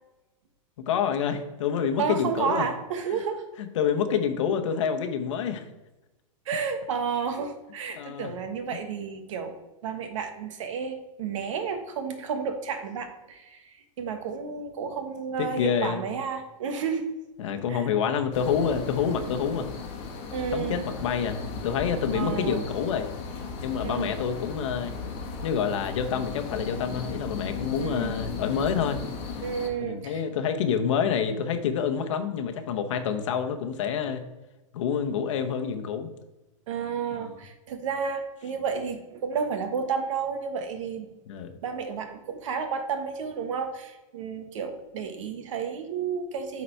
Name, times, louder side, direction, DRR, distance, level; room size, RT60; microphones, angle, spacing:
voice 1, 0.8-2.7 3.6-5.6 8.0-8.3 15.4-16.0 17.4-19.7 20.5-23.1 23.6-24.9 25.4-29.0 29.8-34.2 34.7-36.1 37.1-37.4 41.3-41.6, left 7 dB, 60° left, 7 dB, 1.0 m, -27 dB
voice 2, 2.0-3.4 6.5-9.5 9.8-17.0 17.7-17.9 20.3-20.8 22.1-22.6 23.8-24.2 27.8-28.2 29.4-30.2 36.7-41.1 41.6-46.6, right 6 dB, 65° right, 6 dB, 1.3 m, -31 dB
sound 1, 18.3-29.7, left 4 dB, 30° left, 1.2 m, -36 dB
8.5 x 4.2 x 4.5 m, 1.0 s
supercardioid pair, 160°, 17 cm